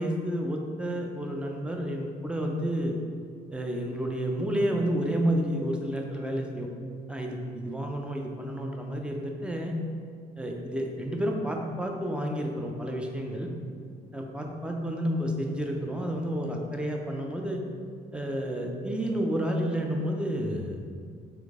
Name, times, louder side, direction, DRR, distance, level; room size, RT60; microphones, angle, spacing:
voice 1, 0.0-2.9 3.5-6.7 7.1-9.7 10.4-13.5 14.1-17.6 18.1-20.8, equal, 5° right, 1 dB, 0.5 m, -30 dB
3.7 x 3.4 x 3.6 m, 2.1 s
cardioid pair, 110°, 17 cm